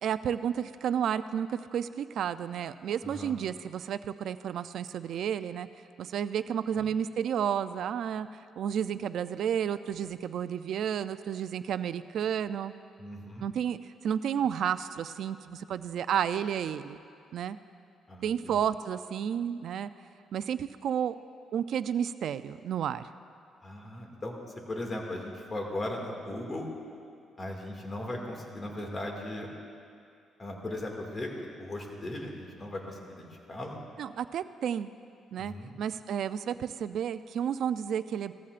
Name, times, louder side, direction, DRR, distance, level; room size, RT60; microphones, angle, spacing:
voice 1, 0.0-5.7 6.0-8.3 8.6-12.7 13.4-17.0 17.3-17.6 18.2-19.9 20.3-21.2 21.5-23.0 34.0-34.9 35.3-38.3, right 8 dB, 70° right, 13 dB, 0.4 m, -31 dB
voice 2, 3.0-3.3 6.8-6.9 13.0-13.5 18.1-18.6 23.6-24.4 24.7-26.7 27.4-29.5 30.4-31.3 31.6-33.8 35.4-35.7, left 1 dB, 30° left, 0 dB, 2.1 m, -38 dB
17.5 x 14.0 x 2.5 m, 2.4 s
cardioid pair, 90°, 0 cm